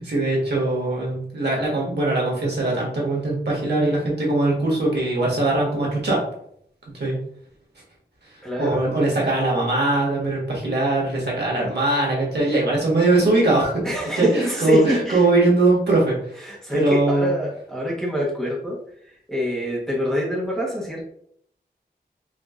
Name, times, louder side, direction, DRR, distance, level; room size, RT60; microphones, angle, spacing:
voice 1, 0.0-6.2 6.9-7.2 8.6-13.7 14.2-14.3 14.6-16.2 16.7-17.3, right 2 dB, 85° right, -3 dB, 1.5 m, -21 dB
voice 2, 8.4-8.8 13.8-15.3 16.4-18.8 19.0-21.0, equal, ahead, -5 dB, 1.1 m, -25 dB
5.0 x 2.7 x 2.4 m, 0.68 s
wide cardioid pair, 70°, 17 cm